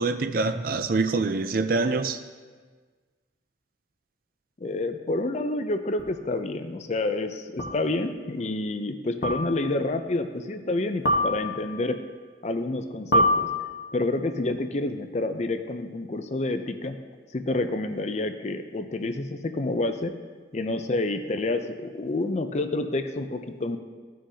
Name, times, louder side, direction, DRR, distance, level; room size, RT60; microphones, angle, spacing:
voice 1, 0.0-2.2, right 3 dB, 50° right, 9 dB, 0.5 m, -25 dB
voice 2, 4.6-12.0 12.4-13.5 13.9-17.0 17.3-20.1 20.5-23.8, left 2 dB, 40° left, 8 dB, 0.5 m, -28 dB
sound 1, 6.0-6.1 7.6-8.0 9.2-9.8 11.1-11.8 13.1-14.1, left 1 dB, 65° left, 1.1 m, -25 dB
14.5 x 6.3 x 2.8 m, 1.5 s
head